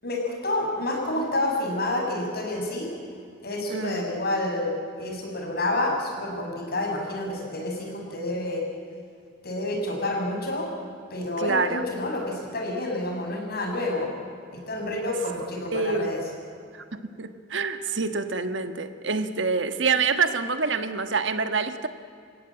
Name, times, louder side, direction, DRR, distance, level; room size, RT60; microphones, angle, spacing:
voice 1, 0.0-2.9 3.4-4.7 5.0-8.6 9.4-10.7 11.1-14.1 14.7-16.2, left 1 dB, 55° left, 0 dB, 6.5 m, -29 dB
voice 2, 3.7-4.1 11.4-11.8 15.7-16.1 16.7-21.9, right 4 dB, 70° right, 9 dB, 1.4 m, -26 dB
29.0 x 16.5 x 8.8 m, 2.3 s
head